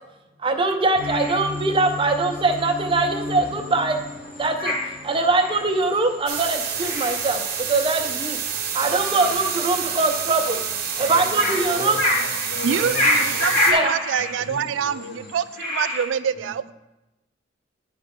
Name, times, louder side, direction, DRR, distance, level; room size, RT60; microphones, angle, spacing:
voice 1, 0.4-4.0 4.4-4.7 5.0-7.4 7.7-8.4 8.7-10.6 11.0-12.0 13.7-13.9, right 3 dB, 30° right, 5 dB, 0.6 m, -22 dB
sound 1, 0.9-8.3, left 2 dB, 20° left, 1.0 m, -36 dB
sound 2, 1.0-16.1, left 1 dB, 50° left, 2.4 m, -29 dB
sound 3, 6.3-13.7, right 7 dB, 55° right, 0.9 m, -28 dB
voice 2, 11.0-13.8 14.1-15.3 16.3-16.5, left 3 dB, 75° left, -5 dB, 2.6 m, -37 dB
voice 3, 12.6-16.7, right 8 dB, 85° right, 15 dB, 0.3 m, -26 dB
10.5 x 4.7 x 3.7 m, 0.99 s
head